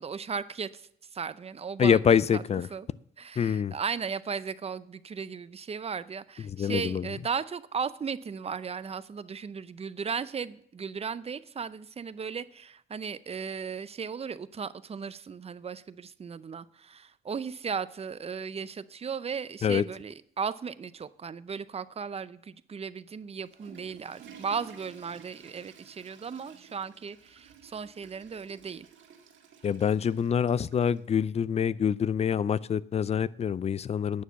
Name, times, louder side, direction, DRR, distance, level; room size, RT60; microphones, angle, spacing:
voice 1, 0.0-2.4 2.7-2.9 3.2-28.9, right 6 dB, 30° right, 16 dB, 0.5 m, -36 dB
voice 2, 1.8-2.7 3.4-3.7 6.5-7.1 19.6-19.8 29.6-34.2, left 7 dB, 30° left, 20 dB, 0.4 m, -26 dB
Water / Toilet flush, 23.2-31.1, right 7 dB, 75° right, 1.8 m, -53 dB
9.4 x 6.5 x 7.0 m, 0.68 s
cardioid pair, 90°, 20 cm